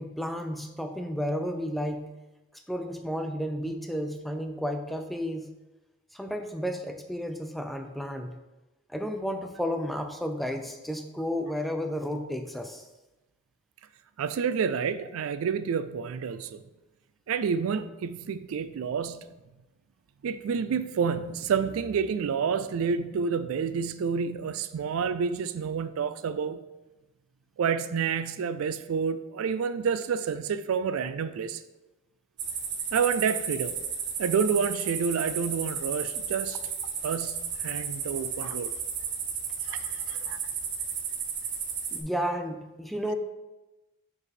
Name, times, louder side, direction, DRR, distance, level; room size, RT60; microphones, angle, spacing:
voice 1, 0.0-2.1 2.7-5.5 6.1-8.4 8.9-12.9 41.9-43.2, equal, ahead, 0.4 m, -32 dB
voice 2, 14.2-16.6 17.3-19.3 20.2-26.6 27.6-31.6 32.9-33.8 34.2-36.6 37.0-38.7 39.7-40.4, right 6 dB, 80° right, 0.3 m, -29 dB
sound 1, 32.4-42.0, right 7 dB, 55° right, 0.7 m, -33 dB
4.8 x 4.8 x 4.2 m
head